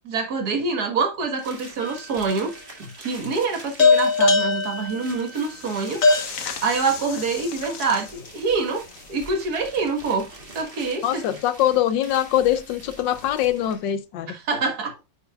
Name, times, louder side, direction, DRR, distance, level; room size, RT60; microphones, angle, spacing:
voice 1, 0.1-6.0 6.6-8.8 9.1-10.3 10.6-11.2 14.3-15.0, right 4 dB, 55° right, 1.9 m, -26 dB
sound 1, 1.4-13.9, right 1 dB, 30° right, 2.1 m, -45 dB
sound 2, 1.8-2.4 3.8-8.3, left 4 dB, 50° left, 1.3 m, -22 dB
voice 2, 11.0-14.3, left 11 dB, 75° left, 1.4 m, -23 dB
10.0 x 5.6 x 2.3 m
omnidirectional pair, 2.0 m